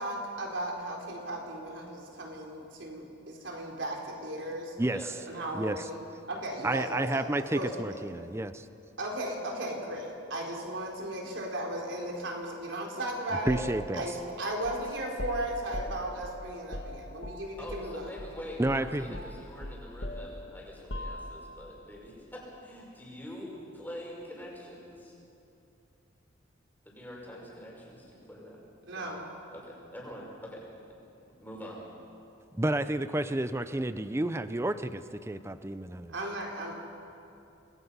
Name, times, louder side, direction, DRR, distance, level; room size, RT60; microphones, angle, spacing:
voice 1, 0.0-4.7 5.3-6.0 6.3-8.0 9.0-13.6 13.9-18.1 28.9-29.3 36.1-36.7, right 1 dB, 70° right, 0 dB, 4.1 m, -36 dB
voice 2, 4.9-5.5 17.6-25.1 26.9-28.6 28.9-29.1 29.5-30.7 31.4-31.8, equal, 10° left, -3 dB, 5.6 m, -44 dB
voice 3, 5.5-5.8 6.6-8.7 13.5-14.1 18.6-19.2 32.5-36.1, right 1 dB, 15° right, 12 dB, 0.6 m, -30 dB
sound 1, 13.5-17.9 18.2-18.4 18.6-21.6, equal, 65° left, 2.2 m, -40 dB
28.0 x 20.5 x 5.6 m, 2.7 s
head